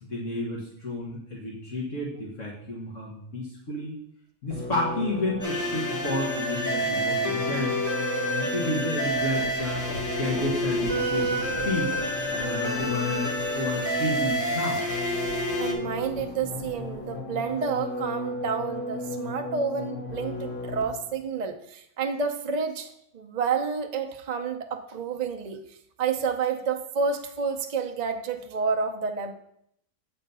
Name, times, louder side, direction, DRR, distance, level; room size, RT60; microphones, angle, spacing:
voice 1, 0.0-4.0 4.4-7.8 8.2-9.9 10.2-11.9 12.3-14.8, left 2 dB, 55° left, -4 dB, 1.8 m, -31 dB
sound 1, 4.5-21.1, left 2 dB, 35° left, 1.2 m, -35 dB
sound 2, 5.4-15.7, equal, 10° left, 1.2 m, -29 dB
sound 3, 9.1-17.1, left 1 dB, 85° left, 2.2 m, -44 dB
voice 2, 15.6-29.3, right 5 dB, 55° right, 5 dB, 0.4 m, -30 dB
8.4 x 4.5 x 5.4 m, 0.73 s
omnidirectional pair, 1.6 m